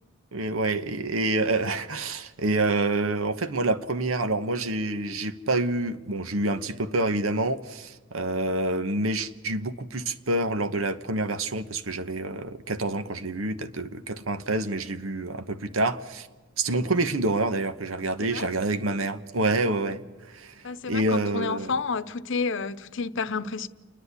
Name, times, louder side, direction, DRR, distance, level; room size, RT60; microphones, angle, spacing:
voice 1, 0.3-16.3 16.6-20.0 20.3-21.7, right 2 dB, 85° right, 1.2 m, -27 dB
voice 2, 20.6-23.7, left 4 dB, 65° left, 0.8 m, -30 dB
29.5 x 10.5 x 8.3 m
head